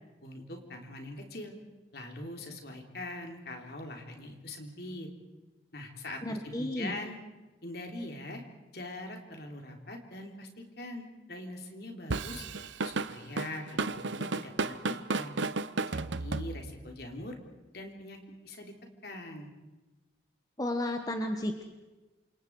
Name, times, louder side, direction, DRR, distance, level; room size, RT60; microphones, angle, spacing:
voice 1, 0.2-1.6 1.9-5.1 5.7-7.2 7.6-8.4 8.7-12.4 12.8-15.3 15.9-17.4 17.7-18.2 18.4-18.7 19.0-19.5, left 1 dB, 55° left, 3 dB, 3.5 m, -42 dB
voice 2, 6.2-7.0 20.6-21.6, left 1 dB, 20° left, 5 dB, 1.2 m, -33 dB
Drum kit / Drum, 12.1-16.9, right 3 dB, 85° right, 0.9 m, -33 dB
28.0 x 27.0 x 4.7 m, 1.2 s
head